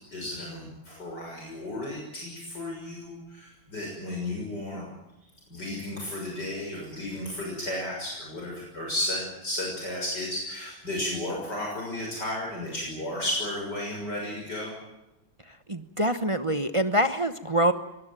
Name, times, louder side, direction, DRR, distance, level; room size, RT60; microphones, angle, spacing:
voice 1, 0.1-4.9 5.5-14.7, left 1 dB, 55° left, -1 dB, 7.2 m, -33 dB
voice 2, 15.7-17.7, right 1 dB, 25° right, 9 dB, 0.7 m, -25 dB
23.5 x 19.0 x 9.2 m, 0.91 s
omnidirectional pair, 2.2 m